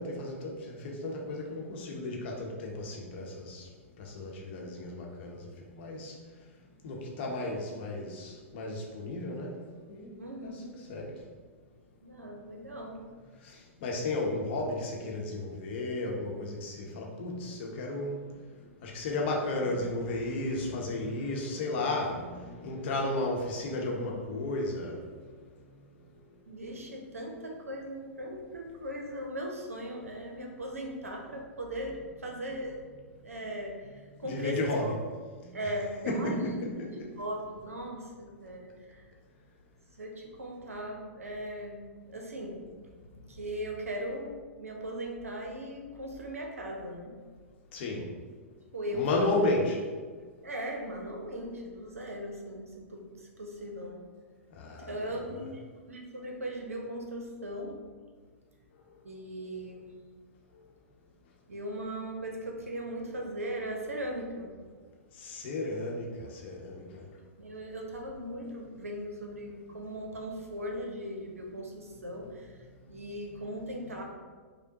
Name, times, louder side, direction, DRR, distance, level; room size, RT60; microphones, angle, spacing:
voice 1, 0.0-3.7 4.0-5.4 5.7-6.1 6.8-9.5 9.9-10.1 10.4-11.1 13.4-18.2 18.8-25.0 34.2-34.9 35.4-35.5 36.1-36.9 47.7-48.0 48.9-49.8 54.6-55.4 65.2-67.0 73.9-74.0, left 2 dB, 50° left, -1 dB, 0.8 m, -33 dB
voice 2, 10.2-10.7 12.0-13.0 26.5-32.8 33.2-33.9 34.2-34.9 35.5-36.6 36.9-39.0 40.0-42.7 43.3-44.3 44.6-47.1 48.7-49.5 50.4-54.0 54.8-57.8 59.0-59.9 61.5-64.6 67.2-72.6 72.9-74.0, equal, 80° right, 1 dB, 0.7 m, -38 dB
5.2 x 2.1 x 2.8 m, 1.5 s
figure-of-eight pair, 105°, 8 cm